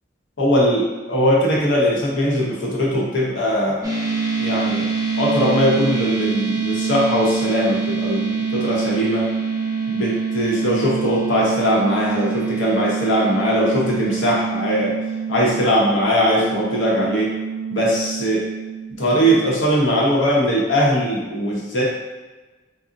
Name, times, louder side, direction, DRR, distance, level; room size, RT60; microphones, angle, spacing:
voice 1, 0.4-3.9 4.4-4.9 5.2-9.3 9.9-15.0 15.3-17.3 17.7-18.5 18.9-21.8, equal, 75° left, -4 dB, 0.8 m, -20 dB
sound 1, 3.8-19.4, right 5 dB, 20° right, 0.5 m, -25 dB
2.5 x 2.0 x 3.7 m, 1.2 s
head